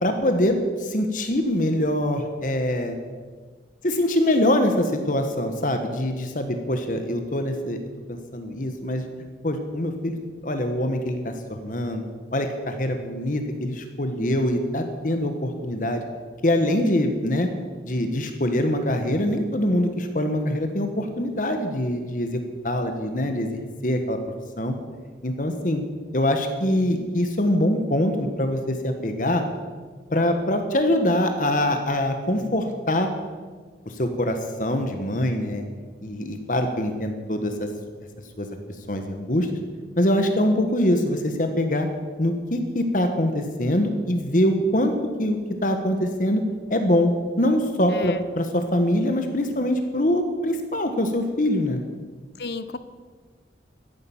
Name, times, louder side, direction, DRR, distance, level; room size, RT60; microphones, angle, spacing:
voice 1, 0.0-3.0 3.8-7.8 8.1-9.0 9.4-11.3 11.6-12.0 12.3-16.0 16.4-17.5 17.8-24.2 24.6-24.7 25.2-25.8 26.1-29.4 30.1-33.1 33.9-35.6 36.0-37.7 38.4-38.5 38.9-39.5 40.0-41.9 42.2-44.9 45.2-46.4 46.7-47.1 47.4-51.8, left 1 dB, 45° left, 6 dB, 1.3 m, -24 dB
voice 2, 47.9-48.2 52.4-52.8, left 3 dB, 60° left, 13 dB, 0.9 m, -32 dB
14.5 x 10.5 x 7.1 m, 1.5 s
head